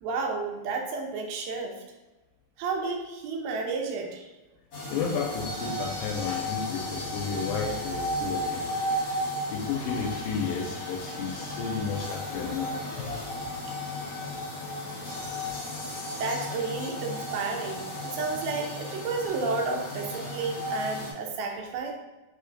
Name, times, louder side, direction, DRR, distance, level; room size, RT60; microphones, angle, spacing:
voice 1, 0.0-1.8 2.6-4.3 16.2-21.9, right 4 dB, 85° right, 2 dB, 2.5 m, -32 dB
sound 1, 4.7-21.1, left 1 dB, 60° left, 1.3 m, -34 dB
voice 2, 4.9-8.7 8.9-9.2 9.5-13.1, left 6 dB, 80° left, 1 dB, 2.0 m, -32 dB
5.7 x 3.2 x 2.5 m, 1.1 s
omnidirectional pair, 4.2 m